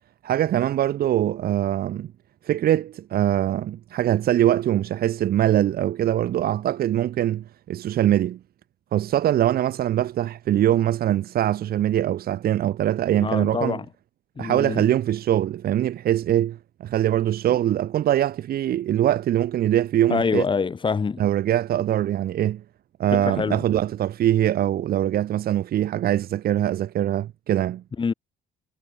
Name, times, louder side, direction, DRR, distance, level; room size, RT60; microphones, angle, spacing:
voice 1, 0.2-2.1 2.4-8.4 8.9-13.8 14.4-20.4 21.2-22.6 23.0-27.8, right 12 dB, 65° right, 7.7 m, -22 dB
voice 2, 13.2-13.8 14.4-14.8 20.1-21.2 23.1-23.6 28.0-28.1, left 5 dB, 30° left, 4.8 m, -25 dB
cardioid pair, 110°, 17 cm